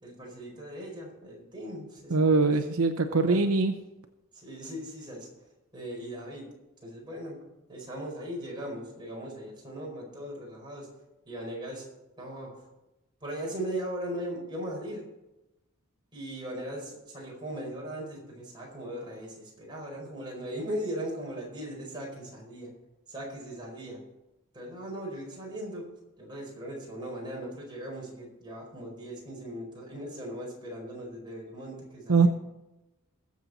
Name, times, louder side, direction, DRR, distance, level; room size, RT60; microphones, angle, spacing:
voice 1, 0.0-2.4 3.1-3.4 4.3-5.3 5.7-6.5 6.8-7.4 7.7-10.9 11.3-11.9 12.2-12.5 13.2-15.0 16.1-22.7 23.1-24.0 24.5-25.8 26.2-32.3, right 1 dB, 20° right, -2 dB, 4.7 m, -38 dB
voice 2, 2.1-3.7 32.1-32.3, right 4 dB, 70° right, 7 dB, 0.8 m, -22 dB
21.0 x 7.4 x 4.1 m, 0.96 s
head